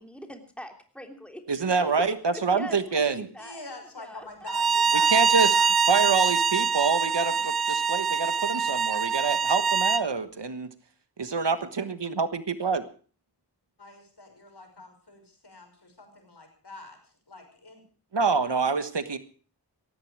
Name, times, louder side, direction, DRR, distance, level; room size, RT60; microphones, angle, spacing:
voice 1, 0.0-1.9 2.3-3.6 4.0-4.5, equal, 5° left, 4 dB, 3.3 m, -43 dB
voice 2, 1.5-3.3 5.1-5.5 5.9-10.7 11.2-12.8 18.1-19.2, right 4 dB, 85° right, 11 dB, 1.4 m, -26 dB
voice 3, 3.4-5.7 13.8-17.0 17.3-17.8, left 3 dB, 70° left, 4 dB, 5.8 m, -44 dB
Bowed string instrument, 4.5-10.0, right 6 dB, 65° right, 0.7 m, -24 dB
17.5 x 15.5 x 4.8 m, 0.40 s
wide cardioid pair, 40°, 41 cm